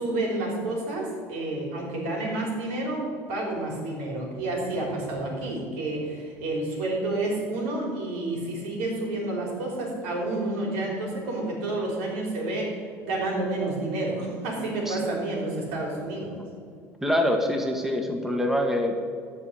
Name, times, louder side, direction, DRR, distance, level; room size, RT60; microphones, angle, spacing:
voice 1, 0.0-16.4, right 2 dB, 85° right, -1 dB, 3.3 m, -30 dB
voice 2, 17.0-19.0, left 1 dB, 5° right, 3 dB, 1.5 m, -25 dB
14.0 x 4.8 x 7.9 m, 2.3 s
supercardioid pair, 100°, 6 cm